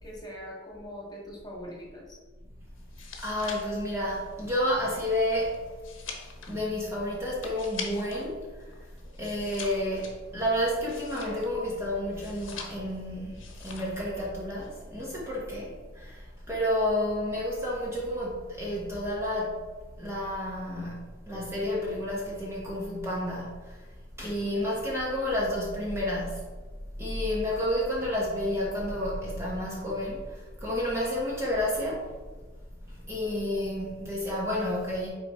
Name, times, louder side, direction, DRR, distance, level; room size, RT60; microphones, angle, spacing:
voice 1, 0.0-2.2, equal, 20° left, -3 dB, 1.7 m, -42 dB
sound 1, 2.8-8.3 8.6-11.6 12.1-13.0 13.3-14.0 14.3-14.7, left 5 dB, 80° left, 1.1 m, -43 dB
voice 2, 3.2-5.6 6.4-8.8 9.2-19.6 20.0-23.9 24.2-26.5 27.0-32.1 32.9-35.1, left 1 dB, 15° right, -5 dB, 1.3 m, -30 dB
6.1 x 4.6 x 4.3 m, 1.4 s
head